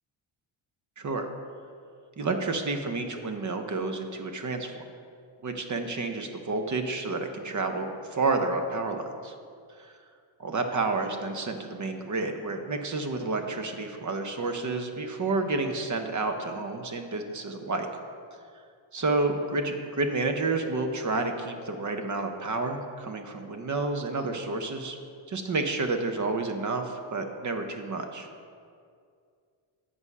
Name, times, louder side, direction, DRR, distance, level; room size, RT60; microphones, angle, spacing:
voice 1, 1.0-1.3 2.2-4.8 5.4-9.3 9.8-9.9 10.4-17.9 18.9-25.0 25.3-28.3, right 3 dB, 35° right, 6 dB, 0.8 m, -30 dB
7.9 x 4.8 x 5.4 m, 2.3 s
cardioid pair, 85°, 49 cm